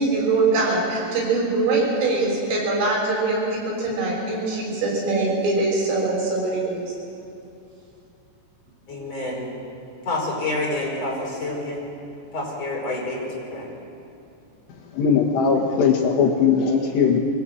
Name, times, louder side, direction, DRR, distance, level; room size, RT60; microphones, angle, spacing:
voice 1, 0.0-6.9, right 3 dB, 75° right, -3 dB, 8.7 m, -23 dB
voice 2, 8.9-9.5 10.1-11.8 12.3-13.7, left 2 dB, 30° left, -3 dB, 5.7 m, -28 dB
voice 3, 14.9-17.2, left 6 dB, 65° left, 1 dB, 3.6 m, -19 dB
23.5 x 18.0 x 8.9 m, 2.7 s
omnidirectional pair, 5.7 m